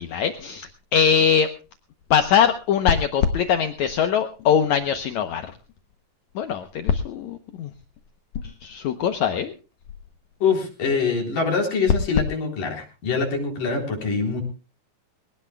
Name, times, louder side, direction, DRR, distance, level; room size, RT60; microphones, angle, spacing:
voice 1, 0.0-1.5 2.1-5.5 6.4-7.7 8.6-9.5, left 7 dB, 80° left, 8 dB, 1.6 m, -22 dB
voice 2, 10.4-14.4, left 5 dB, 60° left, 2 dB, 5.3 m, -24 dB
22.5 x 18.0 x 2.3 m, 0.32 s
omnidirectional pair, 4.5 m